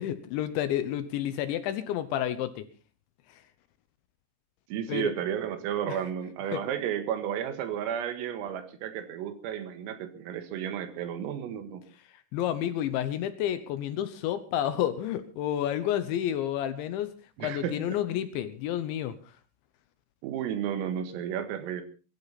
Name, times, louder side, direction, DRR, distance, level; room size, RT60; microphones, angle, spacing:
voice 1, 0.0-2.6 4.9-5.1 5.9-6.0 6.5-6.6 12.3-17.1 17.4-19.2, left 11 dB, 75° left, 12 dB, 3.0 m, -30 dB
voice 2, 4.7-11.8 17.4-18.0 20.2-21.8, right 9 dB, 85° right, 9 dB, 4.4 m, -33 dB
22.0 x 13.0 x 4.1 m, 0.35 s
omnidirectional pair, 5.9 m